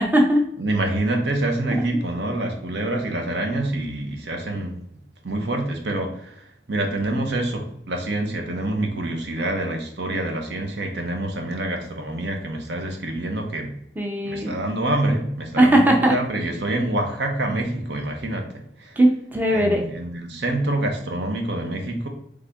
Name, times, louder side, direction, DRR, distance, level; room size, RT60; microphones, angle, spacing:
voice 1, 0.0-0.4 1.7-1.8 14.0-14.7 15.6-16.1 19.0-19.8, right 1 dB, 10° right, 1 dB, 0.5 m, -18 dB
voice 2, 0.6-4.8 5.2-13.7 14.2-18.5 18.8-19.0 19.5-22.1, right 1 dB, 75° right, 3 dB, 0.9 m, -26 dB
3.9 x 3.5 x 3.5 m, 0.73 s
head